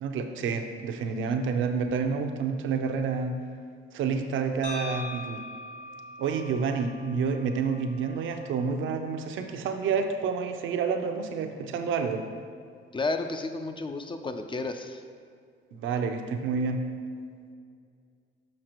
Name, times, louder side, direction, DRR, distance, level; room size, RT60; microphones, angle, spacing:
voice 1, 0.0-3.4 3.9-5.4 6.2-12.2 15.7-16.8, right 5 dB, 80° right, 6 dB, 0.6 m, -29 dB
sound 1, 4.6-8.7, left 2 dB, 65° left, 1.3 m, -42 dB
voice 2, 12.9-15.0, left 3 dB, 25° left, 7 dB, 0.4 m, -32 dB
6.4 x 5.7 x 3.0 m, 2.2 s
cardioid pair, 90°, 20 cm